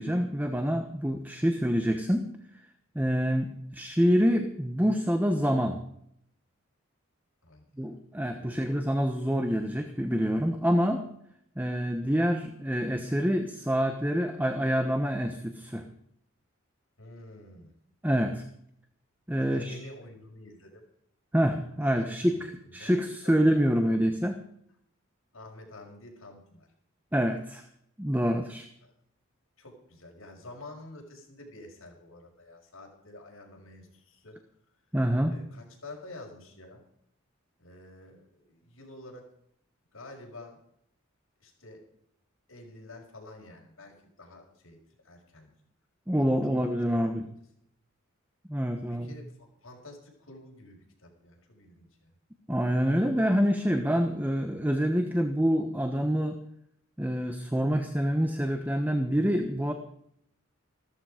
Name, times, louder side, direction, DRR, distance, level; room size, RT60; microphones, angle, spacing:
voice 1, 0.0-2.3 2.9-5.8 7.8-11.0 11.6-15.8 18.0-18.4 19.3-19.8 21.3-22.3 22.7-24.4 27.1-27.6 28.0-28.7 34.9-35.3 46.1-47.3 48.5-49.1 52.5-56.4 57.0-59.7, equal, 10° right, 6 dB, 1.1 m, -26 dB
voice 2, 7.4-7.9 8.4-8.6 17.0-17.7 19.4-20.8 22.0-22.9 25.3-26.7 28.8-28.9 29.6-34.4 35.2-36.8 37.6-39.3 39.9-40.6 41.4-41.8 42.5-44.8 45.0-45.5 46.8-47.3 48.8-49.3 49.6-52.1, left 2 dB, 80° left, 1 dB, 5.8 m, -49 dB
15.5 x 14.0 x 5.1 m, 0.69 s
head